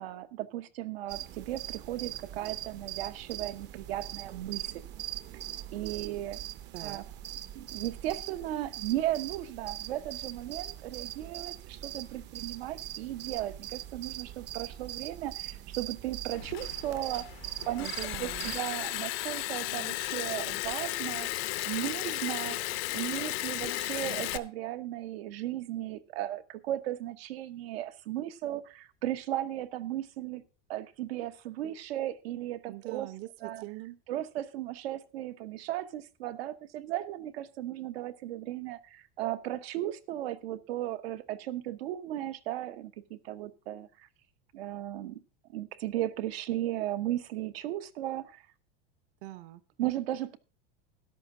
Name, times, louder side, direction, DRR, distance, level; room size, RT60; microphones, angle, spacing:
voice 1, 0.0-4.8 5.7-6.4 6.8-7.0 7.5-17.3 17.6-17.9 18.2-21.3 21.6-22.6 22.9-30.4 30.7-33.1 33.4-33.6 34.1-44.1 44.5-45.2 45.5-48.4 49.8-50.4, right 13 dB, 85° right, 8 dB, 1.2 m, -36 dB
sound 1, 1.1-18.6, right 13 dB, 35° right, 0.7 m, -41 dB
voice 2, 6.7-7.0 17.8-18.6 32.7-34.0 49.2-49.6, right 17 dB, 60° right, 14 dB, 1.0 m, -43 dB
Liquid, 16.3-24.4, left 18 dB, 75° left, 1.0 m, -35 dB
13.5 x 10.5 x 3.8 m, 0.33 s
supercardioid pair, 140°, 30 cm